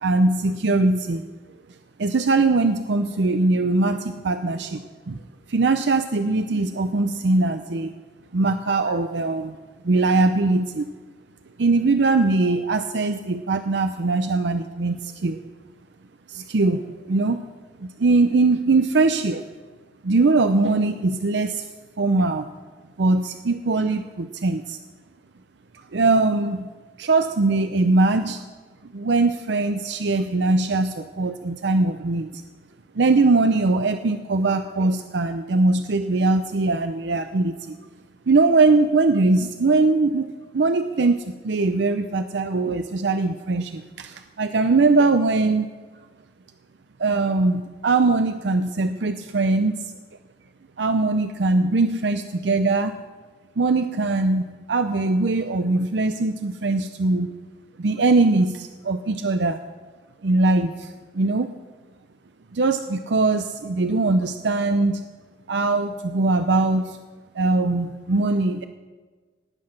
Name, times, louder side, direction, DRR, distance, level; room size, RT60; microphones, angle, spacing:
voice 1, 0.0-1.2 2.0-5.2 5.5-7.9 8.3-9.6 9.8-10.8 11.6-15.4 16.3-17.4 17.8-19.5 20.0-21.7 22.0-22.5 23.0-24.8 25.7-26.7 27.0-28.4 28.8-32.4 32.9-37.8 38.3-40.3 40.5-45.7 47.0-49.9 50.8-52.9 53.6-57.3 57.8-59.6 60.2-61.5 62.5-65.0 65.5-67.0 67.3-68.7, right 3 dB, 75° right, 9 dB, 0.6 m, -21 dB
18.5 x 8.6 x 5.9 m, 1.4 s
head